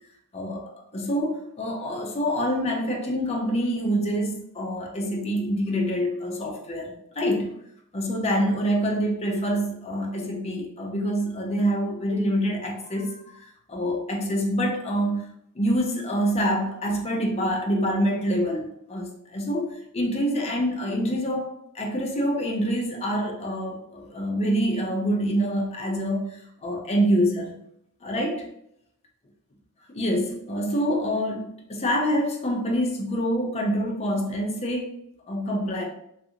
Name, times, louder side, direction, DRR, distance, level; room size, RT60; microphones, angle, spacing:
voice 1, 0.3-7.5 7.9-15.3 15.6-27.6 28.0-28.4 29.9-34.9 35.3-35.8, equal, 30° left, 1 dB, 0.5 m, -26 dB
2.4 x 2.4 x 2.8 m, 0.73 s
head